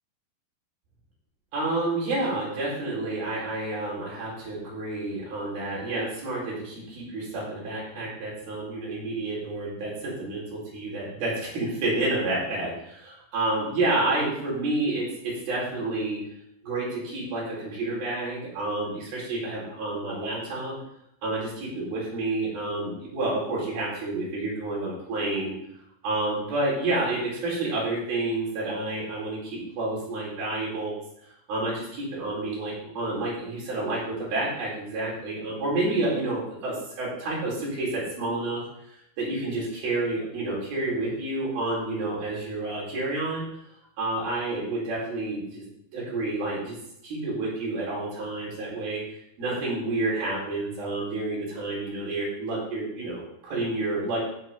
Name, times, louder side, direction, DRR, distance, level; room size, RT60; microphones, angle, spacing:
voice 1, 1.5-16.2 16.6-20.8 21.2-25.5 26.0-30.9 31.5-38.6 39.2-43.5 44.0-45.7 45.9-46.8 47.0-49.0 49.4-54.2, right 2 dB, 70° right, -5 dB, 6.1 m, -29 dB
15.5 x 7.2 x 3.8 m, 0.76 s
omnidirectional pair, 4.4 m